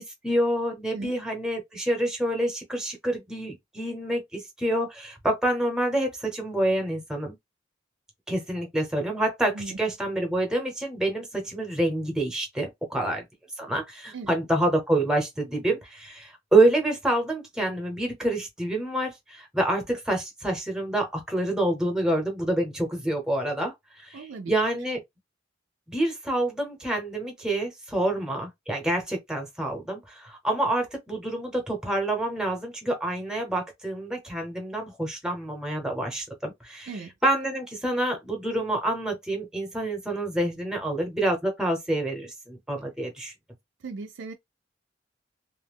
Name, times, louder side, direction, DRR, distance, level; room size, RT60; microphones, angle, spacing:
voice 1, 0.0-7.4 8.3-13.2 13.6-25.0 25.9-36.9 37.2-43.3, right 1 dB, 5° right, 0.9 m, -27 dB
voice 2, 24.1-24.5 36.9-37.1 43.8-44.3, right 4 dB, 65° right, 0.4 m, -37 dB
2.5 x 2.2 x 3.5 m
head